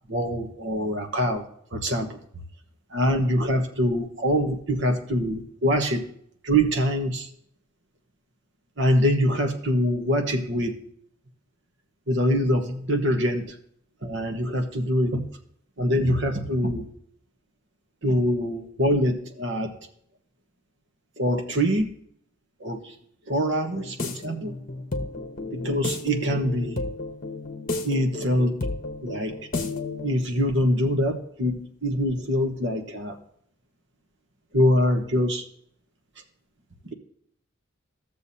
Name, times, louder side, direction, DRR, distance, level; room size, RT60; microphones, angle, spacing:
voice 1, 0.1-1.4 1.7-2.2 2.9-6.1 6.4-7.3 8.8-10.8 12.1-13.6 14.0-15.2 15.8-16.9 18.0-19.7 21.2-21.9 22.6-22.9 23.3-24.5 25.5-26.9 27.8-28.7 29.0-29.4 30.0-33.2 34.5-35.4, equal, 55° right, 4 dB, 1.2 m, -24 dB
sound 1, 23.6-30.2, left 2 dB, 40° left, 1.0 m, -32 dB
15.5 x 6.9 x 2.8 m, 0.66 s
head